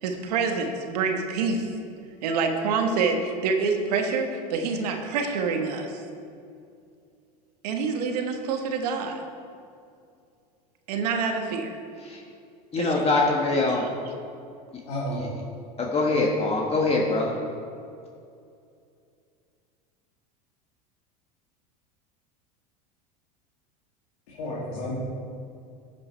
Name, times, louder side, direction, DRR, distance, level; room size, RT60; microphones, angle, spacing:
voice 1, 0.0-1.7 2.2-6.0 7.6-9.2 10.9-11.8 12.8-13.0 13.7-13.9, right 4 dB, 80° right, 4 dB, 1.4 m, -27 dB
voice 2, 12.7-13.9 15.2-15.3 15.9-17.3, left 3 dB, 30° left, -1 dB, 1.5 m, -23 dB
voice 3, 14.9-15.2 24.3-25.0, left 1 dB, 80° left, -7 dB, 2.6 m, -31 dB
12.0 x 7.6 x 4.5 m, 2.4 s
hypercardioid pair, 95°, 20 cm